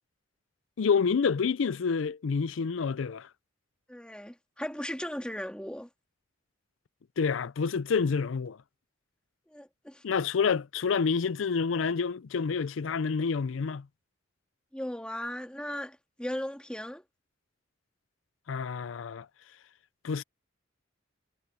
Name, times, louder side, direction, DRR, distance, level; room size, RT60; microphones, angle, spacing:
voice 1, 0.8-3.3 7.2-8.6 10.0-13.9 18.5-19.3 20.0-20.2, left 5 dB, 75° left, 0.5 m, -28 dB
voice 2, 3.9-5.9 9.5-10.0 14.7-17.0, equal, 5° left, 2.0 m, -37 dB
head